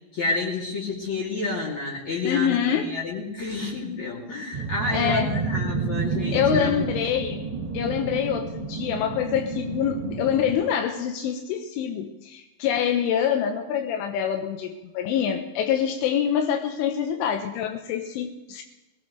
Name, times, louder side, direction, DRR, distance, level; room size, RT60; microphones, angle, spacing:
voice 1, 0.1-6.8, left 3 dB, 40° left, -4 dB, 4.0 m, -30 dB
voice 2, 2.2-2.9 4.9-5.3 6.3-7.4 7.7-18.6, left 9 dB, 85° left, 4 dB, 3.6 m, -25 dB
sound 1, 4.5-10.6, right 5 dB, 25° right, 3.4 m, -30 dB
22.5 x 18.5 x 3.4 m, 1.0 s
omnidirectional pair, 5.5 m